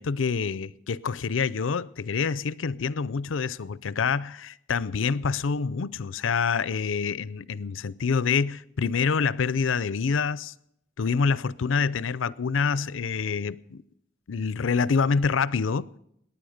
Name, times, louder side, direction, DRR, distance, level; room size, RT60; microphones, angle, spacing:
voice 1, 0.0-10.5 11.0-13.8 14.3-15.9, left 5 dB, 85° left, 0.5 m, -26 dB
19.0 x 9.8 x 6.5 m
head